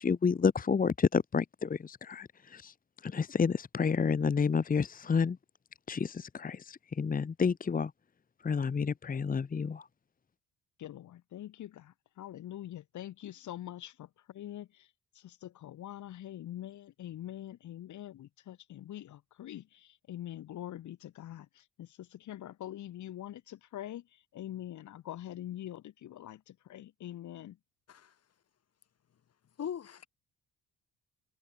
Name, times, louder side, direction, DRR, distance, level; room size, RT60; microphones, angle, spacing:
voice 1, 0.0-2.3 2.5-2.7 3.1-5.4 5.9-7.9 8.4-9.8, left 5 dB, 30° left, 1.0 m, -29 dB
voice 2, 10.8-14.7 15.2-24.0 24.3-27.6, left 12 dB, 75° left, 2.7 m, -44 dB
voice 3, 29.6-30.1, left 8 dB, 55° left, 4.3 m, -39 dB
cardioid pair, 90°, 30 cm